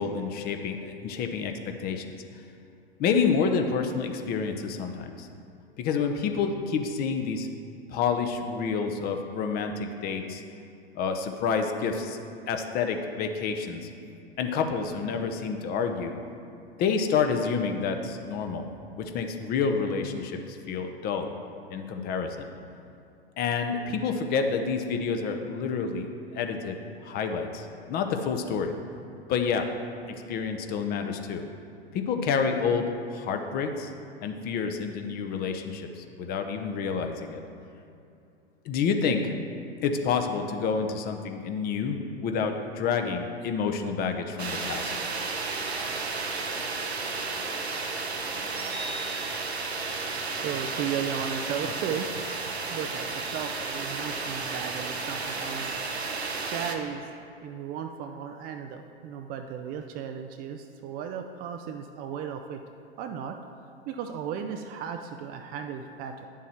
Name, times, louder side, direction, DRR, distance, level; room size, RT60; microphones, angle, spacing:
voice 1, 0.0-2.2 3.0-5.3 5.8-7.5 7.9-10.4 10.9-12.2 12.5-13.9 14.4-16.1 16.8-21.3 21.7-22.5 23.4-26.8 27.0-28.8 29.3-29.7 30.1-31.5 31.9-33.9 34.2-37.4 38.6-39.3 39.8-44.9, left 5 dB, 30° left, 5 dB, 0.8 m, -28 dB
sound 1, 44.4-56.8, right 4 dB, 90° right, 0.9 m, -32 dB
voice 2, 50.3-52.1 52.7-55.7 56.5-57.1 57.4-62.6 63.0-63.4 63.9-66.3, right 8 dB, 30° right, 6 dB, 0.5 m, -35 dB
10.0 x 7.2 x 4.3 m, 2.5 s
figure-of-eight pair, 95°, 31 cm